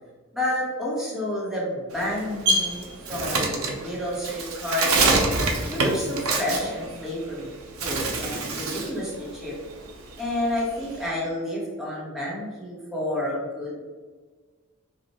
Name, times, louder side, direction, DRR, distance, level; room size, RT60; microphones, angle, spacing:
voice 1, 0.3-5.1 5.7-7.5 7.8-9.5 10.2-13.8, left 1 dB, ahead, -6 dB, 1.2 m, -30 dB
Bird, 1.9-7.4 7.7-9.0 9.3-11.1, right 3 dB, 75° right, 0.8 m, -25 dB
4.5 x 2.5 x 4.2 m, 1.4 s
head